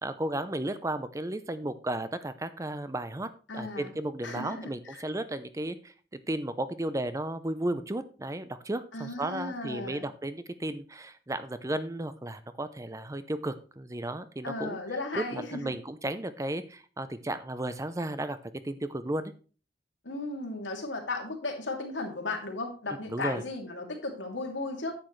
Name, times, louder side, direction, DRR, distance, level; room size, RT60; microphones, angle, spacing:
voice 1, 0.0-5.9 6.3-14.8 15.1-18.4 18.6-19.3 23.1-23.4, right 1 dB, 15° right, 12 dB, 0.6 m, -34 dB
voice 2, 3.5-3.9 4.2-5.0 8.9-10.1 14.4-15.7 20.0-24.9, left 2 dB, 90° left, 2 dB, 2.5 m, -35 dB
10.0 x 8.6 x 3.2 m, 0.36 s
head